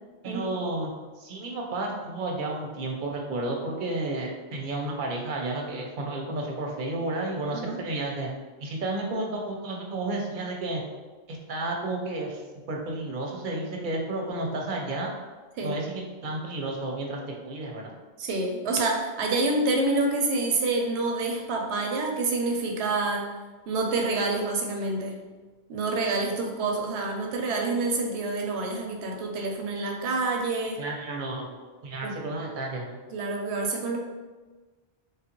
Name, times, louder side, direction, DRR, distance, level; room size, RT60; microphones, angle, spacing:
voice 1, 0.2-0.9 1.2-8.3 8.6-10.8 11.3-15.1 15.6-17.9 30.8-31.5 31.8-33.0, right 2 dB, 55° right, 0 dB, 0.7 m, -32 dB
voice 2, 18.2-23.3 23.7-25.2 25.7-30.8 32.0-32.2 33.1-34.0, right 3 dB, 85° right, 1 dB, 0.9 m, -27 dB
3.2 x 2.4 x 2.9 m, 1.3 s
omnidirectional pair, 1.1 m